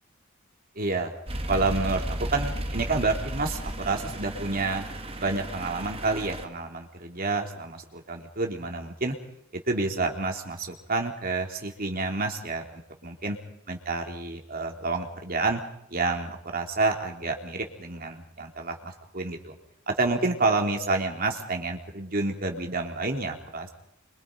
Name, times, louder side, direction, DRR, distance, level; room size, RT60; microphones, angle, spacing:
voice 1, 0.7-1.1 1.5-4.8 5.2-9.1 9.7-13.4 13.7-15.6 15.9-19.5 19.9-23.7, right 3 dB, 45° right, 3 dB, 3.3 m, -29 dB
sound 1, 1.3-6.5, right 1 dB, 30° right, 2.0 m, -34 dB
27.0 x 24.5 x 5.2 m, 0.75 s
head